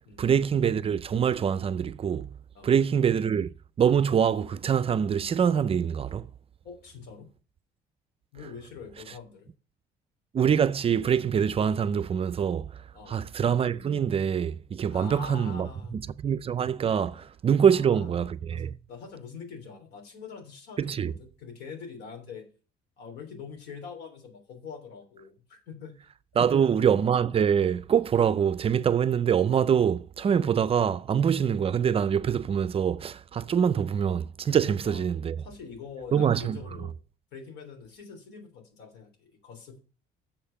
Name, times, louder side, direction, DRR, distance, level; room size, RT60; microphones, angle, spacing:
voice 1, 0.2-2.3 2.6-3.5 3.8-6.3 10.3-12.7 13.1-18.8 20.8-21.1 26.4-35.4 36.1-36.6, right 8 dB, 35° right, 0.5 m, -24 dB
voice 2, 6.6-7.3 8.3-9.5 12.7-13.3 14.9-16.0 17.2-17.3 17.6-18.1 18.5-22.5 23.0-26.1 26.5-26.6 34.6-35.1 35.4-36.9 37.3-39.8, left 6 dB, 80° left, 3.2 m, -44 dB
7.1 x 5.6 x 6.8 m
cardioid pair, 110°, 17 cm